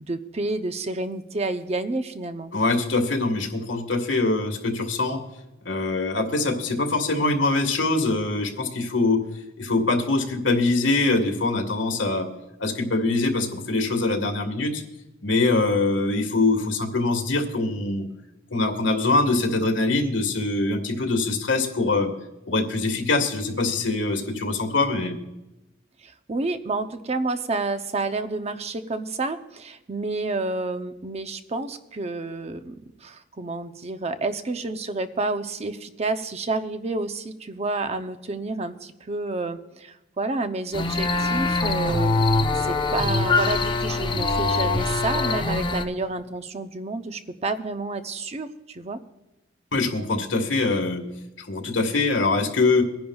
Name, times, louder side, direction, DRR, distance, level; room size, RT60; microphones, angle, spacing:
voice 1, 0.0-2.5 26.0-32.7 33.0-49.0, right 3 dB, 35° right, 9 dB, 0.6 m, -29 dB
voice 2, 2.5-5.2 5.6-9.2 9.6-12.3 12.6-14.8 15.2-18.0 18.5-22.1 22.5-25.1 49.7-51.0 51.4-52.8, left 3 dB, 80° left, 5 dB, 1.7 m, -23 dB
sound 1, 40.7-45.8, left 3 dB, 25° left, 0.7 m, -23 dB
23.5 x 10.5 x 2.4 m, 0.97 s
head